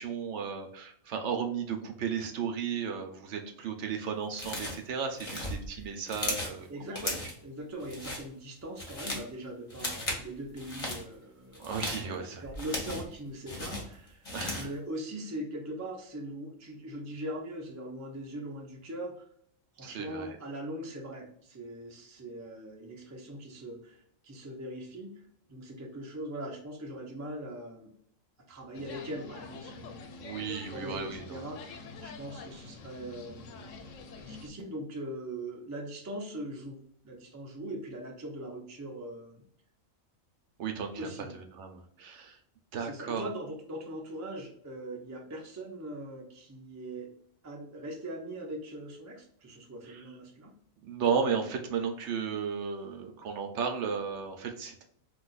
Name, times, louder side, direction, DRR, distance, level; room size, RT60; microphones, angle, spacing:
voice 1, 0.0-7.1 11.6-12.4 14.3-14.7 19.8-20.4 30.2-31.5 40.6-42.4 42.7-43.3 49.9-50.0 50.8-54.8, right 6 dB, 65° right, 4 dB, 0.8 m, -34 dB
sound 1, 4.4-4.9 5.2-6.6 6.9-7.4 7.8-8.2 8.6-9.3 9.7-10.2 10.6-11.0 11.5-13.1 13.5-14.7, left 1 dB, 30° left, 0.8 m, -36 dB
voice 2, 6.7-14.3 14.5-19.2 19.7-25.1 25.5-27.9 28.5-33.9 34.2-36.8 37.0-39.4 41.0-41.3 42.8-47.1 47.4-50.5, right 1 dB, 30° right, 1 dB, 0.3 m, -41 dB
sound 2, 28.7-34.5, left 4 dB, 75° left, 0.9 m, -46 dB
2.6 x 2.3 x 3.8 m, 0.65 s
omnidirectional pair, 1.4 m